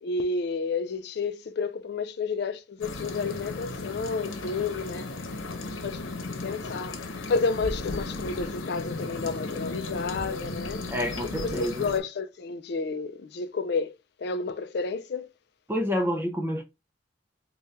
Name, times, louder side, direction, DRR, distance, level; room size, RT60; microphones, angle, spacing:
voice 1, 0.0-5.1 5.8-6.0 6.4-7.0 7.3-10.8 11.4-13.9 14.2-15.3, left 4 dB, 55° left, 0.4 m, -30 dB
sound 1, 2.8-12.0, left 2 dB, 85° left, 0.9 m, -35 dB
voice 2, 10.9-11.9 15.7-16.6, left 1 dB, 10° right, 0.5 m, -28 dB
4.2 x 2.3 x 3.2 m
head